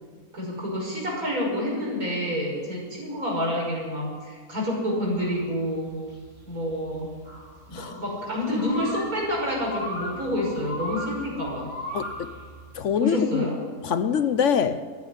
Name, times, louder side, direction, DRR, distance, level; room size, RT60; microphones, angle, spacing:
voice 1, 0.3-6.0 6.5-7.1 7.7-11.7 13.0-13.6, left 1 dB, 80° right, 6.0 m, -28 dB
sound 1, 5.1-12.8, equal, 30° right, 4.0 m, -38 dB
voice 2, 11.9-12.4 12.7-13.5 13.8-14.8, left 7 dB, 60° left, 1.0 m, -24 dB
13.5 x 10.5 x 9.8 m
omnidirectional pair, 1.5 m